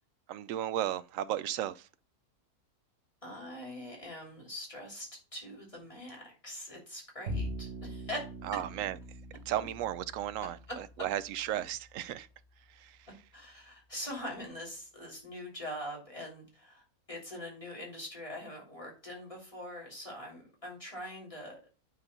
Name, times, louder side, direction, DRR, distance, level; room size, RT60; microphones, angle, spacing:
voice 1, 0.3-1.9 8.5-9.0 9.5-12.3 12.7-13.1, right 12 dB, 70° right, 0.9 m, -35 dB
voice 2, 3.2-8.2 13.3-16.8 17.1-21.6, left 1 dB, 20° left, 3.1 m, -43 dB
Bowed string instrument, 7.3-13.7, equal, 55° right, 1.9 m, -44 dB
9.9 x 4.1 x 5.4 m
omnidirectional pair, 1.5 m